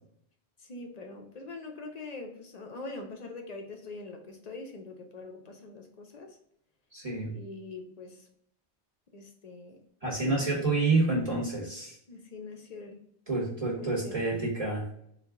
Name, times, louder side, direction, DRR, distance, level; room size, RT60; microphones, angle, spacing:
voice 1, 0.6-6.4 7.3-8.3 9.1-9.8 10.1-10.3 12.1-13.0 13.8-14.1, left 3 dB, 45° left, 3 dB, 0.6 m, -43 dB
voice 2, 6.9-7.4 10.0-12.0 13.3-14.9, right 3 dB, 35° right, -4 dB, 1.2 m, -28 dB
4.0 x 2.4 x 3.5 m, 0.70 s
omnidirectional pair, 1.1 m